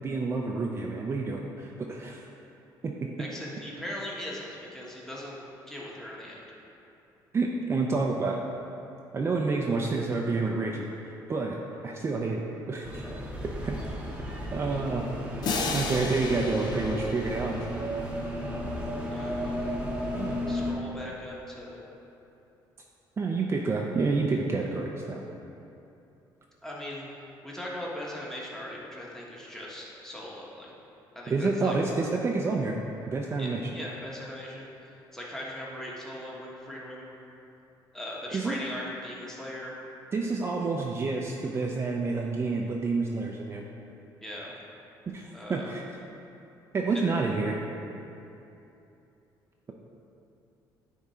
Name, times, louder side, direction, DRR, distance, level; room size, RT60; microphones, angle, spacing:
voice 1, 0.0-2.2 2.8-3.1 7.3-8.4 9.1-11.6 11.8-12.4 12.7-13.0 13.6-13.7 14.5-15.0 15.7-17.7 20.1-20.3 23.2-25.2 31.3-32.8 33.1-33.6 38.3-38.6 40.1-43.6 45.1-45.8 46.7-47.6, right 3 dB, 30° right, 0 dB, 0.5 m, -29 dB
voice 2, 3.2-5.4 5.7-6.5 19.1-19.8 20.3-21.8 26.6-27.1 27.4-30.7 31.1-31.8 33.4-37.1 37.9-39.7 44.2-44.5 45.3-45.7, left 1 dB, 5° left, -5 dB, 1.3 m, -40 dB
sound 1, 12.8-20.7, equal, 15° right, 1.0 m, -34 dB
sound 2, 15.4-18.2, left 4 dB, 55° left, 0.7 m, -34 dB
9.7 x 3.6 x 4.3 m, 2.9 s
cardioid pair, 110°, 8 cm